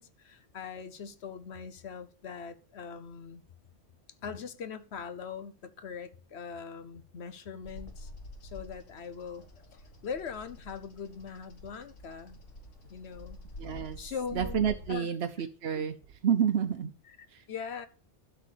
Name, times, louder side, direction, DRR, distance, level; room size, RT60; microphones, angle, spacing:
voice 1, 0.0-3.4 4.2-8.1 8.4-9.5 10.0-12.4 12.9-13.4 14.0-14.6 14.9-15.1 15.4-15.5 15.7-15.8 17.1-17.9, left 6 dB, 65° left, 1.1 m, -41 dB
Bird vocalization bird call bird song, 7.6-14.9, left 1 dB, 85° left, 2.1 m, -47 dB
voice 2, 13.6-14.0 14.3-15.9 16.2-16.9 17.3-17.4, right 8 dB, 60° right, 1.0 m, -29 dB
12.0 x 4.7 x 6.8 m
omnidirectional pair, 1.2 m